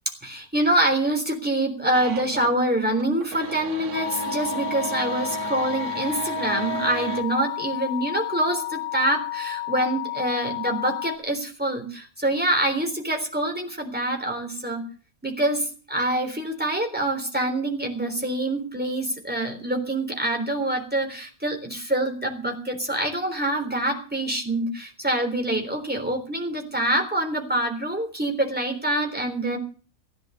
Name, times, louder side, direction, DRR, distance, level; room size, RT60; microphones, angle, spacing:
voice 1, 0.2-14.8 15.2-29.6, right 1 dB, 5° right, 2 dB, 3.6 m, -25 dB
sound 1, 1.9-2.6 2.9-7.2, right 6 dB, 85° right, 2.0 m, -34 dB
sound 2, 3.9-11.2, left 17 dB, 75° left, 4.0 m, -32 dB
15.5 x 11.5 x 6.7 m, 0.39 s
omnidirectional pair, 1.6 m